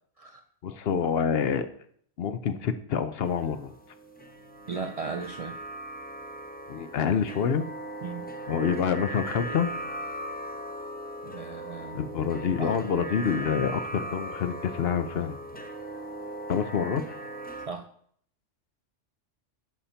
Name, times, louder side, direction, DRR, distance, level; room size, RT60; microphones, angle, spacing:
voice 1, 0.6-1.7 2.2-3.7 6.7-7.7 8.5-9.7 11.9-15.4 16.5-17.2, left 7 dB, 60° left, 11 dB, 0.8 m, -27 dB
sound 1, 3.2-17.7, right 1 dB, 10° left, 0.7 m, -39 dB
voice 2, 4.7-5.6 8.0-8.3 11.2-12.1 12.6-12.8 15.1-15.3 17.7-17.9, right 5 dB, 65° right, 7 dB, 0.3 m, -37 dB
11.0 x 4.2 x 5.6 m, 0.63 s
omnidirectional pair, 1.2 m